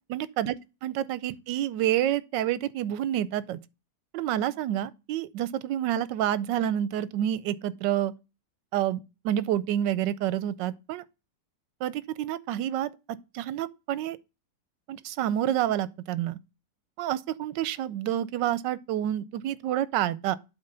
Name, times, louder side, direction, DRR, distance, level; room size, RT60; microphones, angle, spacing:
voice 1, 0.1-0.5 0.8-3.6 4.1-8.1 8.7-11.0 11.8-12.9 13.3-14.2 14.9-16.4 17.0-20.4, right 11 dB, 85° right, 1.3 m, -28 dB
8.2 x 3.5 x 6.7 m
omnidirectional pair, 1.9 m